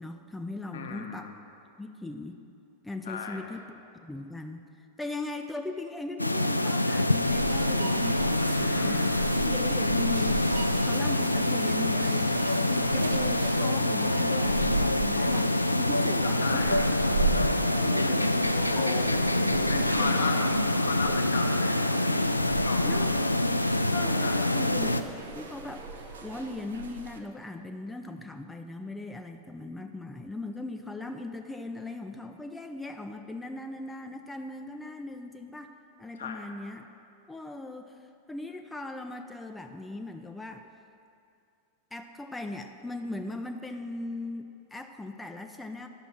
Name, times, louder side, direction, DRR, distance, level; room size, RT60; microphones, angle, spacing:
voice 1, 0.0-1.3 1.8-2.4 2.8-4.6 5.0-9.1 9.3-10.5 10.8-16.8 17.7-18.4 18.9-20.7 22.8-23.1 23.9-25.0 25.3-25.9 26.2-35.7 36.0-36.9 37.3-38.0 38.3-40.7 41.9-45.9, left 2 dB, 5° left, 5 dB, 0.5 m, -39 dB
voice 2, 0.7-1.4 3.0-3.5 8.4-9.1 16.2-16.9 17.3-17.5 18.0-18.2 18.5-19.2 19.7-21.9 22.2-23.1 24.1-24.5 36.2-36.4, left 5 dB, 65° left, 4 dB, 1.0 m, -36 dB
sound 1, 6.2-25.0, left 1 dB, 85° left, 0.3 m, -26 dB
sound 2, 7.3-27.2, right 4 dB, 70° right, 0.7 m, -37 dB
sound 3, 16.0-26.6, right 2 dB, 20° right, 1.2 m, -47 dB
10.5 x 6.0 x 6.0 m, 2.6 s
figure-of-eight pair, 90°, 0 cm